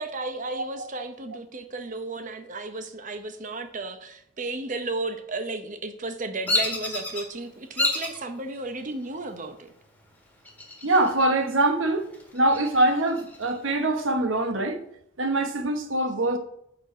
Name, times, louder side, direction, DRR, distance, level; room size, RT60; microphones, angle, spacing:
voice 1, 0.0-9.7, right 2 dB, 40° right, 0.8 m, -34 dB
Bird vocalization bird call bird song, 6.5-7.2 7.8-8.2 8.8-9.3 10.4-11.2 11.6-11.7 12.1-13.5, left 2 dB, 10° left, 1.6 m, -28 dB
voice 2, 10.8-12.1 12.3-14.8 15.2-16.4, right 2 dB, 80° right, 1.1 m, -23 dB
6.0 x 5.9 x 4.8 m
head